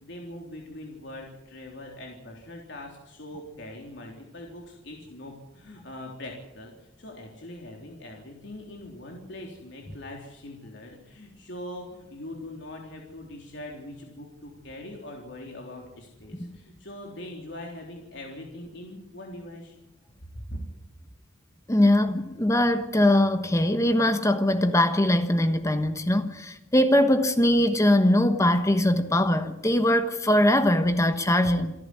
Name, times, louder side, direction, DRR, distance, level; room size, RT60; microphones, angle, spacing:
voice 1, 0.0-6.7 7.0-19.8 20.3-20.6, left 1 dB, 65° left, 3.7 m, -42 dB
voice 2, 21.7-31.7, left 1 dB, 15° left, 1.2 m, -22 dB
28.0 x 11.0 x 9.8 m
head